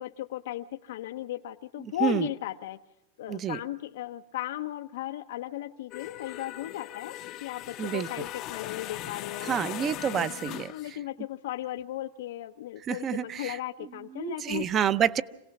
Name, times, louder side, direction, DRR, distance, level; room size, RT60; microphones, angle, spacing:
voice 1, 0.0-2.8 3.2-7.1 7.4-9.5 10.1-10.3 10.7-14.7, left 14 dB, 75° left, 7 dB, 0.7 m, -36 dB
voice 2, 1.8-2.3 3.3-3.6 7.8-8.3 9.4-11.0 12.8-13.6 14.1-15.2, right 9 dB, 25° right, 15 dB, 0.7 m, -29 dB
sound 1, 5.9-10.9, left 15 dB, 35° left, 0.7 m, -39 dB
26.0 x 17.5 x 5.9 m, 0.95 s
supercardioid pair, 150°, 0 cm